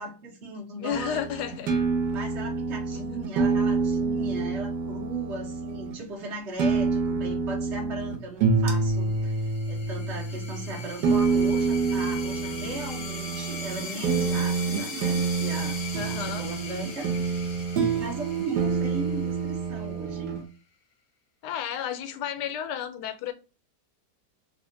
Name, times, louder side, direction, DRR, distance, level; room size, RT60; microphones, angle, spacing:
voice 1, 0.0-1.4 2.1-9.3 9.7-15.8 16.0-20.3, right 2 dB, 45° right, 1.5 m, -38 dB
voice 2, 0.8-1.7 2.9-3.0 16.0-16.5 21.4-23.3, left 9 dB, 80° left, 1.2 m, -32 dB
sound 1, 0.9-5.9 6.6-20.4, right 4 dB, 80° right, 1.4 m, -27 dB
sound 2, 8.9-20.2, left 5 dB, 45° left, 1.0 m, -40 dB
4.1 x 2.5 x 2.6 m
omnidirectional pair, 1.8 m